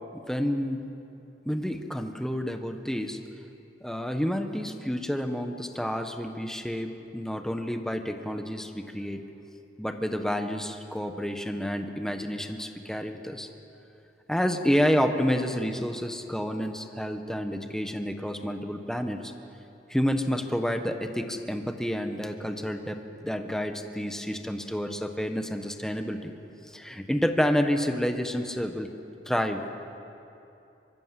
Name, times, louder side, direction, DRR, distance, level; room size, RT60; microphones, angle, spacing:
voice 1, 0.1-0.8 1.4-3.2 3.8-9.2 9.8-13.5 14.3-19.3 19.9-26.3 26.7-28.9 29.3-29.6, equal, 5° left, 6 dB, 1.4 m, -29 dB
24.5 x 22.0 x 7.7 m, 2.8 s
head